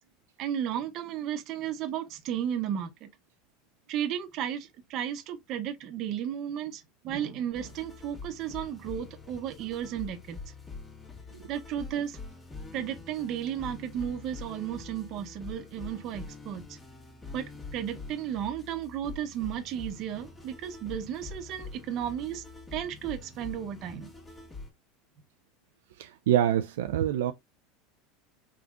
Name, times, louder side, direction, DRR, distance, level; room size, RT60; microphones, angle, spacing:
voice 1, 0.4-3.1 3.9-10.4 11.5-12.2 12.7-16.8 17.3-22.4 22.7-24.1, right 10 dB, 50° right, 0.8 m, -34 dB
sound 1, 7.5-24.7, left 3 dB, 20° left, 1.6 m, -45 dB
voice 2, 26.0-27.3, right 11 dB, 85° right, 0.3 m, -26 dB
4.8 x 3.5 x 2.4 m
supercardioid pair, 105°, 0 cm